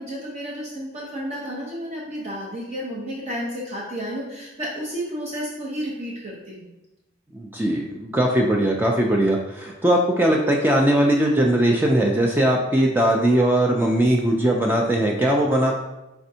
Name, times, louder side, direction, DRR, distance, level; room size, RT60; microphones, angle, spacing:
voice 1, 0.0-6.7, equal, 35° right, -5 dB, 0.7 m, -31 dB
voice 2, 7.3-15.7, right 1 dB, 10° right, 0 dB, 0.3 m, -20 dB
5.1 x 3.4 x 2.7 m, 0.97 s
head